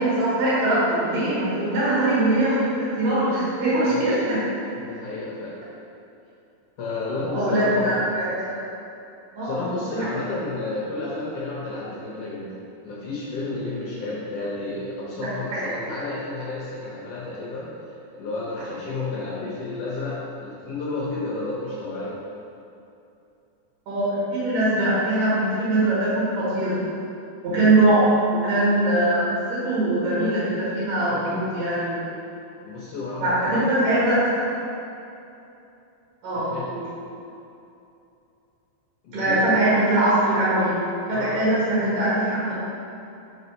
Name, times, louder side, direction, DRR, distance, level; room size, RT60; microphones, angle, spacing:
voice 1, 0.0-4.4 7.2-8.7 9.3-9.6 9.9-10.1 15.2-15.9 23.9-26.8 27.4-28.0 28.3-29.2 29.5-32.0 33.2-34.3 36.2-36.8 39.1-40.8 41.1-42.5, right 1 dB, 85° right, -9 dB, 3.3 m, -22 dB
voice 2, 3.8-4.2 4.8-5.5 6.8-8.1 9.4-12.5 12.8-17.7 18.1-22.2 27.5-27.9 31.1-31.4 32.6-33.7 36.3-36.7 39.0-39.5 41.1-41.4, left 2 dB, 70° left, -6 dB, 1.5 m, -31 dB
5.5 x 4.6 x 4.2 m, 2.7 s
omnidirectional pair, 3.8 m